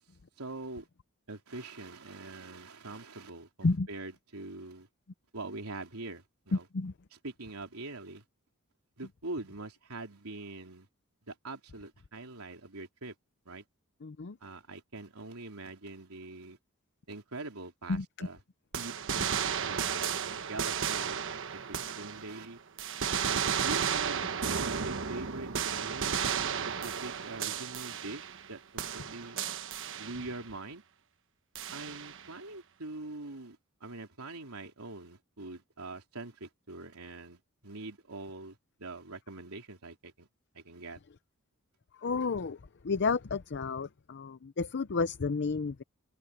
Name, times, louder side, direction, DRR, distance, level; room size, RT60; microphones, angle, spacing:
voice 1, 0.4-0.9 1.3-4.9 5.3-6.7 7.1-8.2 9.0-10.9 11.3-13.2 13.5-13.6 14.4-16.6 17.1-18.4 18.8-21.2 21.5-22.6 23.3-24.2 24.8-29.4 29.9-30.8 31.7-40.3 40.5-41.0, right 2 dB, 85° right, 3.5 m, -44 dB
voice 2, 14.0-14.4 17.9-18.3 42.0-42.6 42.8-45.8, left 4 dB, 55° left, 0.6 m, -31 dB
sound 1, 18.7-22.5 22.8-28.5 28.8-30.4 31.6-32.3, right 7 dB, 60° right, 1.2 m, -33 dB
open air
head